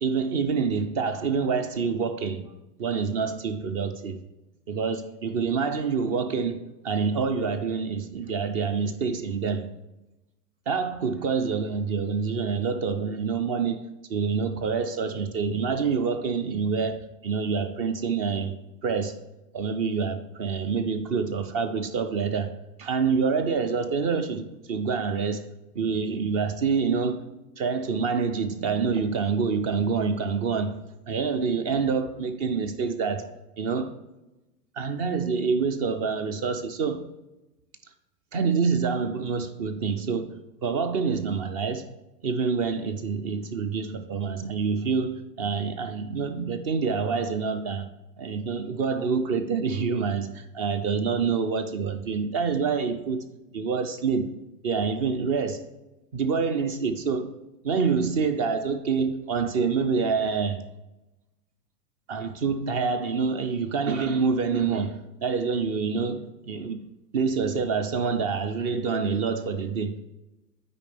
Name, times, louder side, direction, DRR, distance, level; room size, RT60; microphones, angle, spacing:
voice 1, 0.0-2.5 2.8-4.2 4.7-9.7 10.7-13.8 14.1-18.6 18.8-19.2 19.5-22.5 22.8-25.5 25.7-27.2 27.6-30.7 31.1-33.3 33.6-33.9 34.7-37.1 38.3-40.4 40.6-41.9 42.2-47.9 48.2-53.2 53.5-54.3 54.6-55.7 56.1-57.3 57.6-60.6 62.1-66.8 67.1-70.0, right 5 dB, 25° right, 0.3 m, -27 dB
8.7 x 5.0 x 3.3 m
hypercardioid pair, 105°, 48 cm